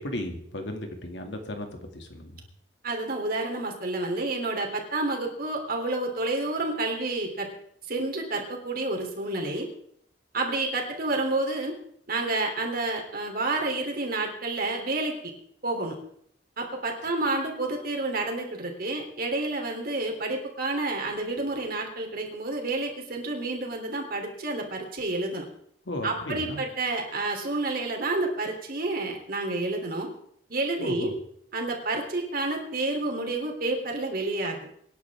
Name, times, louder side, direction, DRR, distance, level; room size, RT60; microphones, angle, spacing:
voice 1, 0.0-2.5 25.9-26.6 30.8-31.2, left 1 dB, 75° left, 4 dB, 2.3 m, -35 dB
voice 2, 2.8-7.5 7.9-9.7 10.3-11.7 12.1-15.3 15.6-16.0 16.6-25.5 26.0-30.1 30.5-31.1 31.5-34.7, right 2 dB, 55° right, 2 dB, 3.2 m, -29 dB
24.5 x 10.5 x 3.6 m, 0.69 s
head